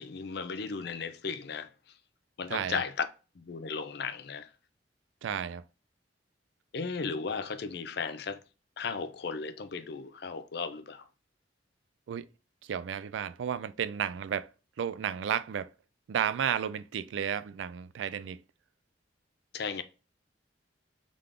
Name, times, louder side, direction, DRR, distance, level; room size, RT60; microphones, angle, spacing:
voice 1, 0.0-1.7 2.4-3.1 3.4-4.5 6.7-8.4 8.8-11.0 19.5-19.8, left 5 dB, 60° left, 0.5 m, -35 dB
voice 2, 2.5-2.8 5.2-5.6 12.1-12.3 12.7-14.5 14.8-15.7 16.1-18.4, right 8 dB, 85° right, 0.3 m, -32 dB
3.8 x 3.3 x 3.6 m
head